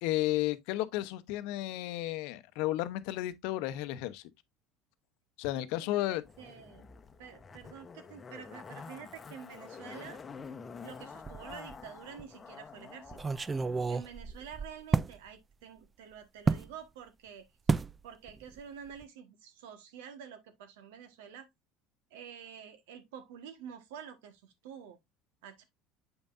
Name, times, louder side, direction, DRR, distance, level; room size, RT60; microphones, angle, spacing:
voice 1, 0.0-4.2 5.4-6.2, left 15 dB, 75° left, 0.7 m, -33 dB
voice 2, 5.5-6.8 7.2-10.2 10.8-13.4 13.9-17.5 18.0-21.5 22.1-25.0 25.4-25.6, right 8 dB, 85° right, 1.4 m, -48 dB
Zipper (clothing), 6.2-13.9 14.2-14.3, left 5 dB, 25° left, 0.8 m, -48 dB
sound 1, 11.2-11.8 12.2-12.3 13.1-15.2 16.5-16.7 17.7-18.0 18.3-18.6 18.9-19.0, right 4 dB, 20° right, 0.3 m, -31 dB
8.0 x 5.4 x 2.5 m
supercardioid pair, 105°, 0 cm